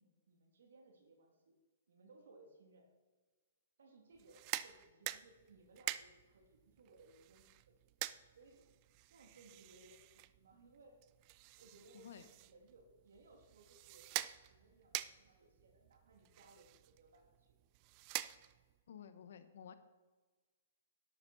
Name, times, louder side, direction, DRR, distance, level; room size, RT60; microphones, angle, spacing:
voice 1, 0.0-1.5 1.9-2.9 3.8-7.7 8.3-8.6 9.1-10.0 10.4-11.0 11.5-14.0 14.5-17.5, right 2 dB, 80° right, 2 dB, 2.5 m, -63 dB
sound 1, 4.2-18.8, right 17 dB, 40° right, 0.4 m, -48 dB
voice 2, 11.9-12.3 18.9-19.7, left 8 dB, 70° left, 11 dB, 1.0 m, -53 dB
11.5 x 7.9 x 4.3 m, 1.3 s
hypercardioid pair, 130°, 0 cm